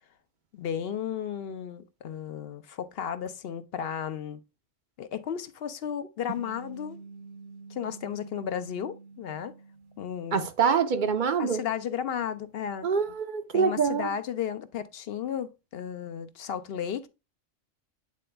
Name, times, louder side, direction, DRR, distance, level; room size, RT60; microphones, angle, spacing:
voice 1, 0.5-4.4 5.0-7.0 7.7-9.5 10.0-10.5 11.4-12.9 13.5-17.1, left 8 dB, 60° left, 0.7 m, -34 dB
sound 1, 6.3-10.9, right 4 dB, 70° right, 1.2 m, -47 dB
voice 2, 10.3-11.6 12.8-14.1, right 6 dB, 50° right, 0.6 m, -25 dB
8.5 x 3.9 x 3.3 m
omnidirectional pair, 1.3 m